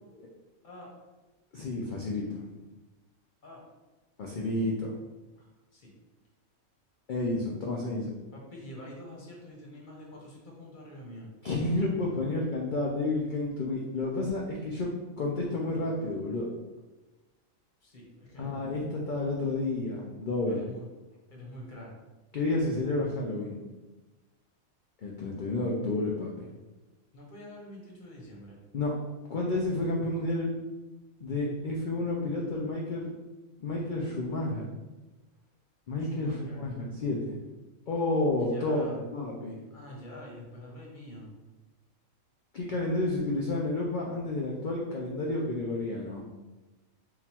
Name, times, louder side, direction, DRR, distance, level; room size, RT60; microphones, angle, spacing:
voice 1, 1.5-2.5 4.2-4.9 7.1-8.1 11.4-14.9 15.2-16.5 18.4-20.6 22.3-23.6 25.0-26.5 28.7-28.9 29.3-30.5 31.2-33.1 33.6-34.7 35.9-37.4 37.9-39.6 42.5-46.2, left 2 dB, 65° left, -2 dB, 0.5 m, -30 dB
voice 2, 5.4-5.9 8.3-11.3 17.8-18.5 20.5-20.8 21.3-21.9 27.1-28.6 36.0-36.6 38.4-39.0 39.7-41.3, left 1 dB, 40° left, -3 dB, 1.0 m, -46 dB
3.7 x 2.4 x 4.3 m, 1.1 s
omnidirectional pair, 1.5 m